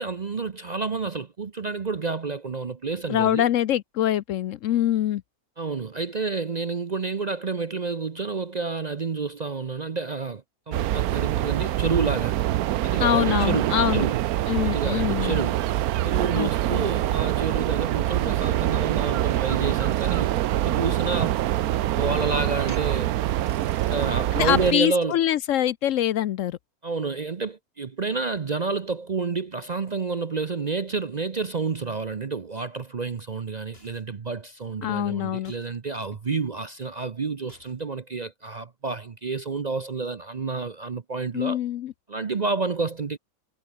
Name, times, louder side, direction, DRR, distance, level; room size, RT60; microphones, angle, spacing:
voice 1, 0.0-3.5 5.6-12.4 12.8-14.2 14.6-15.6 16.0-21.4 21.9-23.1 23.9-25.2 26.8-41.6 42.1-43.2, right 4 dB, 40° right, 0.7 m, -29 dB
voice 2, 3.1-5.2 13.0-14.1 14.5-15.4 16.3-16.8 24.3-26.6 34.8-35.5 41.3-41.9, left 11 dB, 70° left, 0.9 m, -24 dB
sound 1, 10.7-24.7, right 14 dB, 90° right, 1.1 m, -25 dB
sound 2, 18.2-25.4, left 2 dB, 90° left, 7.6 m, -54 dB
sound 3, 33.7-34.2 35.4-35.8 37.5-38.0, left 1 dB, 40° left, 5.9 m, -57 dB
omnidirectional pair, 1.5 m